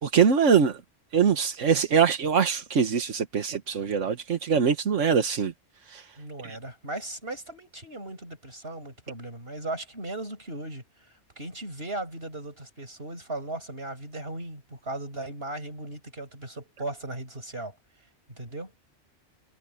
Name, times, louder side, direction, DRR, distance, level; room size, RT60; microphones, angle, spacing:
voice 1, 0.0-0.8 1.1-5.5 5.9-6.1 6.4-6.6, right 6 dB, 85° right, 1.6 m, -23 dB
voice 2, 6.2-10.8 11.4-17.7 18.3-18.7, right 2 dB, 55° right, 7.5 m, -37 dB
omnidirectional pair, 1.2 m